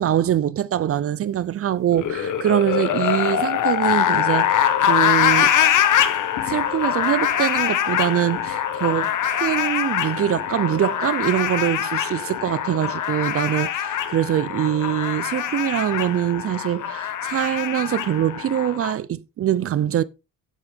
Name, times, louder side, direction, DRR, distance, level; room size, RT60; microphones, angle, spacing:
voice 1, 0.0-5.6 6.1-6.2 6.5-20.0, right 11 dB, 40° right, 0.6 m, -23 dB
sound 1, 1.9-18.9, left 10 dB, 60° left, 1.6 m, -23 dB
9.7 x 7.9 x 3.5 m
cardioid pair, 115°, 35 cm